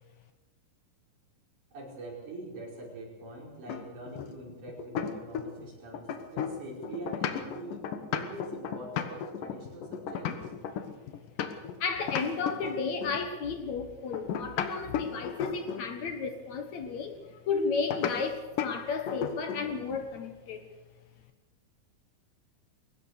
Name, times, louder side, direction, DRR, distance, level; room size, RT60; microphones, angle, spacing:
voice 1, 1.7-10.5, right 2 dB, 65° right, 6.7 m, -44 dB
sound 1, 3.7-5.7 5.9-11.8 12.1-13.2 14.1-15.9 17.9-18.2 18.6-18.8 19.1-19.7, left 8 dB, 75° left, 2.9 m, -34 dB
voice 2, 11.8-20.7, left 5 dB, 60° left, 2.5 m, -33 dB
22.5 x 18.5 x 6.6 m
omnidirectional pair, 3.8 m